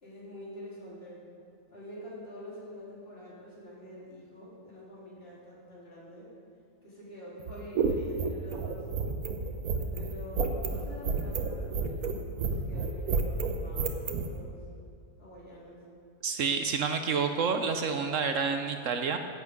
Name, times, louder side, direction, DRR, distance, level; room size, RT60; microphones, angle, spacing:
voice 1, 0.0-1.2 1.7-6.3 6.8-8.8 9.8-12.1 12.4-14.6 15.2-15.8, left 1 dB, 45° left, -8 dB, 3.9 m, -46 dB
sound 1, 7.4-14.3, right 5 dB, 85° right, 1.4 m, -30 dB
voice 2, 16.2-19.2, right 5 dB, 65° right, 6 dB, 1.1 m, -29 dB
15.0 x 8.5 x 5.3 m, 2.3 s
omnidirectional pair, 1.5 m